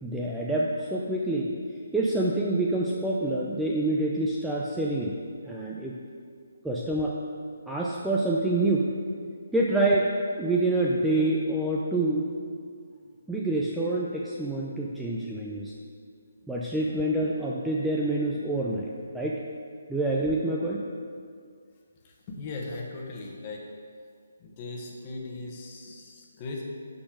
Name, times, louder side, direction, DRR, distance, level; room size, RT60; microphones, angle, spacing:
voice 1, 0.0-1.5 1.9-5.1 5.4-6.0 6.6-7.1 7.7-8.9 9.5-10.1 10.4-12.3 13.3-15.7 16.5-19.4 19.9-20.8, right 2 dB, 5° right, -5 dB, 0.5 m, -27 dB
voice 2, 22.3-23.6 24.4-26.6, left 3 dB, 25° left, -1 dB, 1.2 m, -38 dB
11.5 x 4.2 x 4.9 m, 2.1 s
hypercardioid pair, 165°, 0 cm